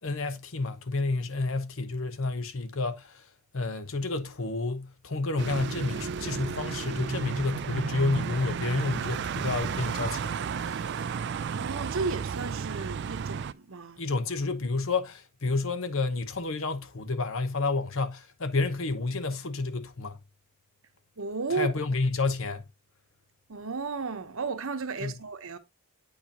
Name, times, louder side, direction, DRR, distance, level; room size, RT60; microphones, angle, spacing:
voice 1, 0.0-3.3 3.5-10.8 14.0-20.2 21.5-22.6 25.0-25.2, left 3 dB, 65° left, 0.9 m, -30 dB
sound 1, 5.4-13.5, right 6 dB, 50° right, 0.3 m, -33 dB
voice 2, 11.5-14.0 21.2-21.7 23.5-25.6, right 4 dB, 65° right, 0.9 m, -33 dB
8.6 x 4.8 x 2.8 m
head